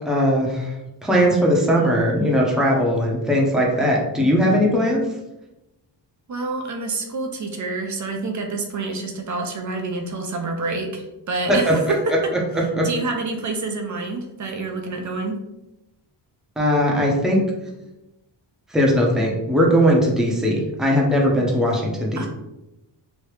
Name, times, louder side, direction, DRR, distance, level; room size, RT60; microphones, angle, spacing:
voice 1, 0.1-0.7 1.0-5.0 11.5-11.7 12.5-12.9 16.6-17.4 18.7-22.3, equal, ahead, -2 dB, 0.6 m, -19 dB
voice 2, 6.3-12.1 12.8-15.4 22.2-22.3, right 3 dB, 40° right, 3 dB, 0.5 m, -27 dB
3.1 x 2.7 x 3.1 m, 0.93 s
cardioid pair, 120°, 45 cm